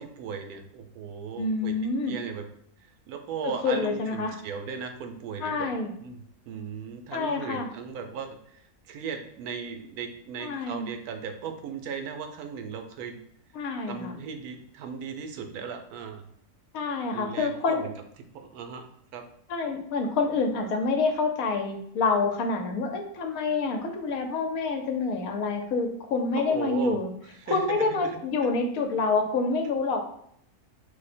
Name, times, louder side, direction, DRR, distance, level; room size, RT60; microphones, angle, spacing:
voice 1, 0.0-1.7 2.1-2.4 3.1-5.7 6.0-6.2 6.5-13.2 13.9-16.2 17.1-17.9 18.3-18.8 19.1-19.2 26.5-27.0 27.4-28.2, right 6 dB, 85° right, 5 dB, 1.1 m, -37 dB
voice 2, 1.4-2.2 3.4-4.3 5.4-5.9 7.1-7.7 10.4-10.9 13.5-14.2 16.7-17.9 19.5-27.1 27.5-30.0, left 4 dB, 75° left, 5 dB, 1.0 m, -27 dB
4.9 x 2.1 x 4.1 m, 0.68 s
omnidirectional pair, 1.6 m